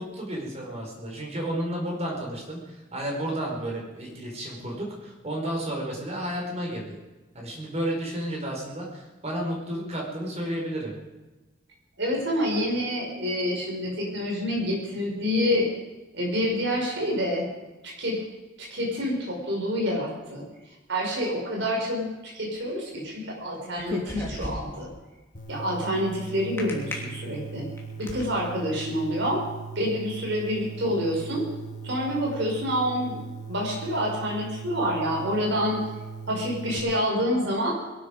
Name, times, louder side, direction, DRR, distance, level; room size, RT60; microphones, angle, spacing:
voice 1, 0.0-7.0 7.3-10.9, right 1 dB, 35° right, -1 dB, 4.6 m, -32 dB
voice 2, 12.0-15.7 16.1-17.5 17.8-18.2 18.6-20.4 20.9-24.9 25.5-27.7 28.0-29.4 29.8-31.5 31.8-33.2 33.5-35.8 36.3-37.8, equal, 65° right, -1 dB, 5.6 m, -27 dB
sound 1, 23.6-24.9 26.6-26.9 27.5-28.2, left 1 dB, 15° left, 2.9 m, -33 dB
sound 2, 25.3-36.8, right 5 dB, 40° left, 2.3 m, -39 dB
22.0 x 12.0 x 5.1 m, 1.1 s
head